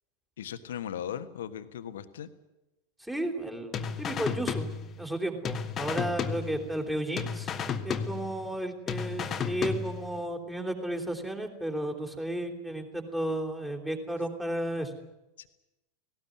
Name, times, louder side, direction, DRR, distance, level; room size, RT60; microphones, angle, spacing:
voice 1, 0.4-2.3 15.4-15.5, left 9 dB, 60° left, 11 dB, 1.4 m, -38 dB
voice 2, 3.0-4.7 5.0-7.5 7.8-14.9, right 1 dB, 5° right, 4 dB, 3.5 m, -33 dB
sound 1, 3.7-5.2 5.4-6.9 7.2-8.6 8.9-10.2, left 6 dB, 25° left, 1.5 m, -33 dB
18.5 x 18.0 x 9.5 m, 0.97 s
figure-of-eight pair, 90°, 0 cm